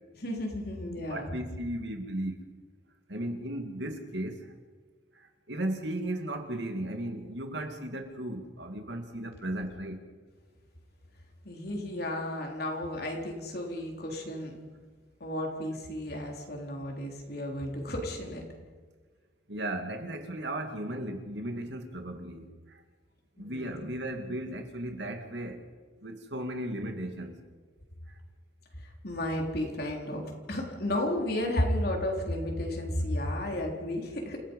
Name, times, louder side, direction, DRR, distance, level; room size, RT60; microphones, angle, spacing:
voice 1, 0.1-1.3 11.4-14.6 15.2-18.5 23.4-23.8 28.8-34.4, left 1 dB, 60° left, 1 dB, 3.9 m, -33 dB
voice 2, 0.9-2.4 3.1-4.5 5.1-10.0 19.5-22.8 23.4-25.6 26.0-27.4 28.1-28.2, right 1 dB, 70° right, 5 dB, 2.5 m, -36 dB
28.5 x 16.5 x 5.5 m, 1.5 s
head